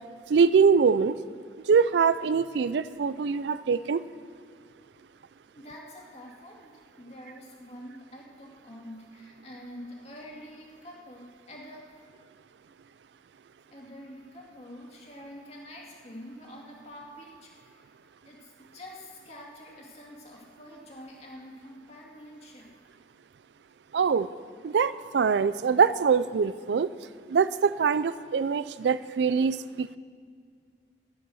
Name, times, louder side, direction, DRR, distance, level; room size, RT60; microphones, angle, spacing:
voice 1, 0.3-1.2 1.6-4.0 23.9-24.3 24.6-26.9 27.3-30.0, right 6 dB, 75° right, 16 dB, 0.4 m, -23 dB
voice 2, 5.5-6.7 7.0-11.9 13.7-17.9 18.2-22.7, equal, 35° left, -2 dB, 2.4 m, -46 dB
12.5 x 11.0 x 6.3 m, 2.1 s
head